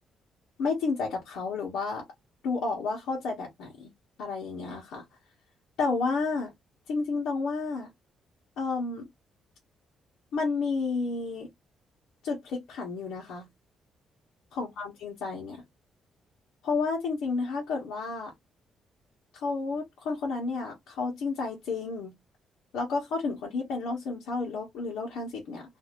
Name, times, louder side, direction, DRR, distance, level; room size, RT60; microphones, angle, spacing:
voice 1, 0.6-2.0 2.4-3.9 4.2-5.0 5.8-6.5 6.9-7.9 8.6-9.0 10.3-11.5 12.2-13.5 14.5-15.6 16.6-18.3 19.3-22.1 22.7-25.6, left 4 dB, 90° left, 1.1 m, -31 dB
2.7 x 2.5 x 2.9 m
cardioid pair, 155°, 0 cm